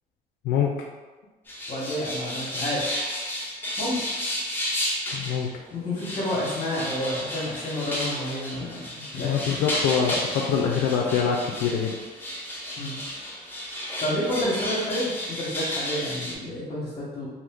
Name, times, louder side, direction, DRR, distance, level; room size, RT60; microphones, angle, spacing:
voice 1, 0.4-0.8 5.1-5.5 9.1-12.0, left 7 dB, 80° left, 0 dB, 0.4 m, -24 dB
sound 1, 1.5-5.5 6.0-16.3, left 1 dB, 10° left, 0.7 m, -32 dB
voice 2, 1.7-3.0 3.8-4.0 5.7-9.6 12.8-13.0 14.0-17.3, left 1 dB, 40° left, -9 dB, 1.1 m, -30 dB
2.6 x 2.5 x 3.5 m, 1.3 s
cardioid pair, 110°, 17 cm